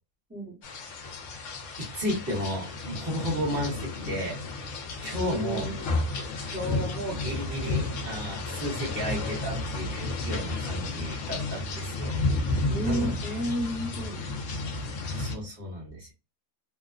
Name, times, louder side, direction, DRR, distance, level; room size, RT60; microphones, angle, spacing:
voice 1, 0.3-0.6 5.1-5.9 12.7-14.3, equal, 10° right, -3 dB, 0.8 m, -32 dB
sound 1, 0.6-15.3, left 2 dB, 70° left, 0.9 m, -32 dB
voice 2, 1.8-4.4 5.0-5.7 6.5-12.2 12.5-13.2 15.1-16.1, equal, 45° right, -3 dB, 1.2 m, -33 dB
2.9 x 2.1 x 2.3 m, 0.29 s
omnidirectional pair, 1.5 m